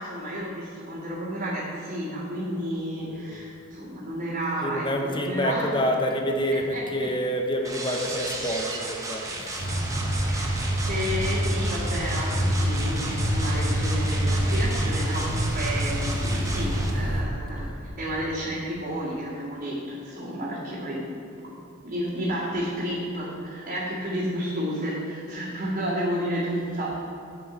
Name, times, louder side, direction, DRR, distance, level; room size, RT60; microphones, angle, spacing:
voice 1, 0.0-5.8 6.7-7.1 8.1-8.3 10.3-21.1 21.4-21.5 21.8-27.0, equal, 45° right, -10 dB, 2.1 m, -31 dB
voice 2, 3.0-3.4 4.6-9.7, equal, 25° left, 3 dB, 0.6 m, -28 dB
sound 1, 7.6-16.9, right 2 dB, 15° right, 0.9 m, -35 dB
sound 2, 9.6-17.2, equal, 45° left, 2.2 m, -26 dB
7.7 x 7.6 x 5.0 m, 2.7 s
head